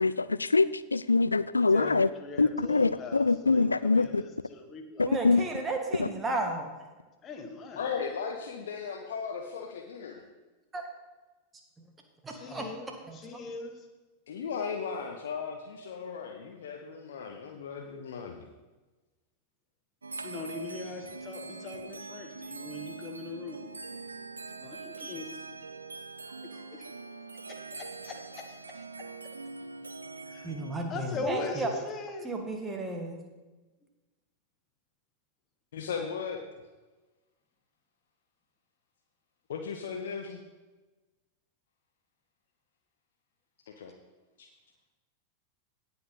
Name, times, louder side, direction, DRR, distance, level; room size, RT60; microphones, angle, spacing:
voice 1, 0.0-2.1 2.4-4.2 5.0-5.4 6.0-6.1, left 3 dB, 80° left, 17 dB, 0.3 m, -24 dB
voice 2, 1.7-5.1 7.2-7.9 12.3-12.9 13.1-13.8 20.2-23.7 24.5-25.4 26.5-26.9 27.7-28.8 30.3-30.5 30.9-32.3, left 3 dB, 25° left, 4 dB, 1.5 m, -40 dB
voice 3, 5.0-6.8 10.7-10.8 12.2-12.6 13.1-13.4 30.4-31.7 32.2-33.2, right 2 dB, 15° right, 3 dB, 1.7 m, -33 dB
voice 4, 7.8-10.3 14.3-18.5 35.7-36.4 39.5-40.4 43.8-43.9 44.4-44.5, left 6 dB, 60° left, 3 dB, 0.8 m, -36 dB
sound 1, 20.0-30.8, right 3 dB, 80° right, 0.5 m, -43 dB
17.0 x 5.7 x 4.0 m, 1.2 s
figure-of-eight pair, 90°, 0 cm